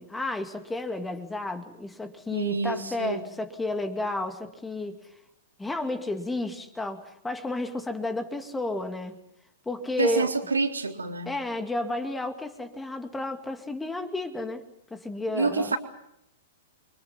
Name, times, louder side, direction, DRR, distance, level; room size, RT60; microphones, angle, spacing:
voice 1, 0.0-5.1 5.6-9.2 9.7-10.3 11.3-14.6 14.9-15.8, left 2 dB, 10° left, 8 dB, 2.4 m, -32 dB
voice 2, 2.3-3.3 10.0-11.4 15.3-15.8, right 3 dB, 75° right, 3 dB, 3.8 m, -27 dB
30.0 x 25.0 x 5.7 m, 0.78 s
figure-of-eight pair, 105°, 0 cm